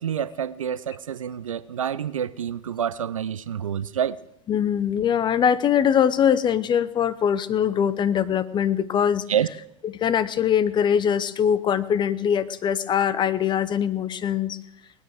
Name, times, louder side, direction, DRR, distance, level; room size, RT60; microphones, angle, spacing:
voice 1, 0.0-4.2 9.3-9.5, right 9 dB, 80° right, 0.6 m, -27 dB
voice 2, 4.5-9.2 9.8-14.6, left 8 dB, 25° left, 0.9 m, -22 dB
19.5 x 9.2 x 6.5 m
figure-of-eight pair, 90°, 17 cm